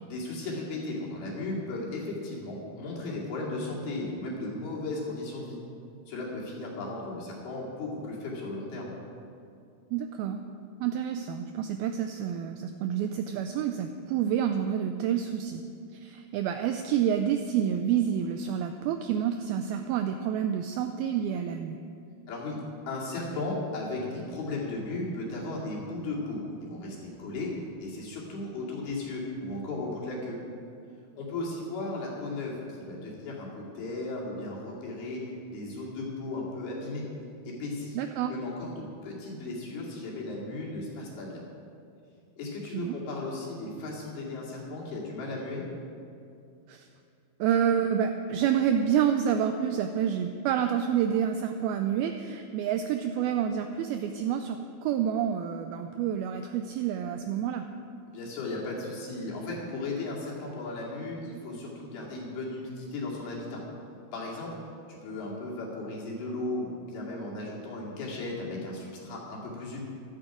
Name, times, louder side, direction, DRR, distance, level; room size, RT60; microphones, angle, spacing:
voice 1, 0.0-5.6 6.1-8.9 22.3-27.5 27.8-30.4 31.2-35.2 35.5-37.1 37.4-38.0 38.2-41.4 42.4-45.6 58.1-63.6 64.1-64.5 64.9-69.8, left 2 dB, 65° left, -4 dB, 4.3 m, -36 dB
voice 2, 9.9-10.4 10.8-15.6 15.9-21.8 38.0-38.3 42.7-43.0 46.7-46.9 47.4-57.7, right 9 dB, 90° right, 7 dB, 2.1 m, -28 dB
14.5 x 12.5 x 5.0 m, 2.5 s
omnidirectional pair, 4.9 m